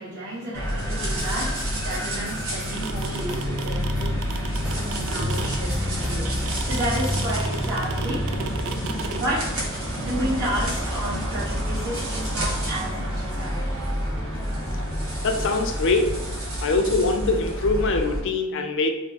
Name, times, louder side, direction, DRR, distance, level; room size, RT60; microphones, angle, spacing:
voice 1, 0.0-4.1 4.7-8.2 9.1-9.5 10.0-13.8, right 1 dB, 50° right, -13 dB, 1.4 m, -31 dB
sound 1, 0.5-18.2, equal, 70° right, 1.2 m, -28 dB
sound 2, 1.2-6.7, equal, 5° right, 0.9 m, -40 dB
sound 3, 2.5-9.2, right 6 dB, 85° right, 0.4 m, -34 dB
voice 2, 15.2-16.1 16.6-18.9, left 3 dB, 60° left, 5 dB, 0.4 m, -23 dB
3.4 x 2.1 x 3.9 m, 1.0 s
head